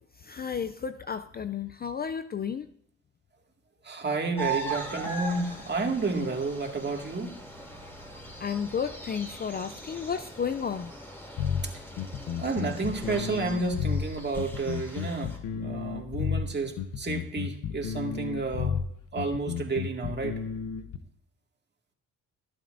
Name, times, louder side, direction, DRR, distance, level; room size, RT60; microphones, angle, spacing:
voice 1, 0.2-2.7 8.4-10.9, left 7 dB, 30° left, 11 dB, 0.4 m, -32 dB
voice 2, 3.8-7.3 11.6-11.7 12.4-18.8 19.1-20.4, right 3 dB, 35° right, 2 dB, 2.1 m, -31 dB
sound 1, 4.4-15.4, right 3 dB, 5° left, 2.8 m, -40 dB
sound 2, 11.4-21.0, left 7 dB, 70° left, 0.9 m, -32 dB
22.0 x 7.7 x 2.6 m, 0.73 s
supercardioid pair, 75°, 32 cm